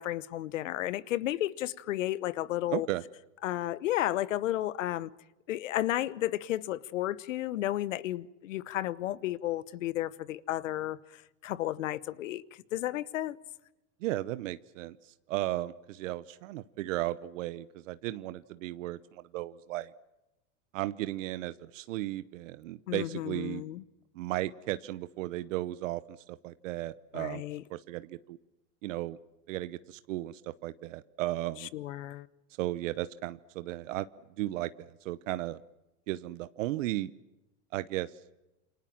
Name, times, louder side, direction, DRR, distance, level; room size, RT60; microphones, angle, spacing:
voice 1, 0.0-2.9 3.4-5.1 5.5-12.4 12.7-13.4 22.9-23.8 27.1-27.6 31.7-32.3, left 14 dB, 90° left, 1.1 m, -33 dB
voice 2, 2.7-3.0 14.0-19.9 20.7-23.6 24.1-27.4 27.7-28.4 28.8-29.2 29.5-31.7 32.6-34.1 34.4-35.6 36.1-37.1 37.7-38.1, right 16 dB, 80° right, 1.0 m, -35 dB
28.0 x 25.0 x 7.5 m
supercardioid pair, 110°, 38 cm